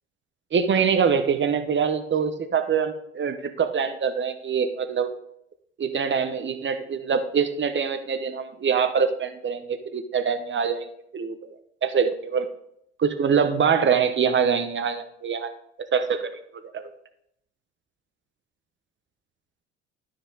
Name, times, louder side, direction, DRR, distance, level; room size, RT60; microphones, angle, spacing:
voice 1, 0.5-5.1 5.8-10.9 11.1-11.3 11.8-12.5 13.0-15.5 15.9-16.3 16.6-16.9, right 6 dB, 35° right, 9 dB, 1.0 m, -24 dB
12.0 x 4.8 x 4.0 m, 0.74 s
hypercardioid pair, 65°, 31 cm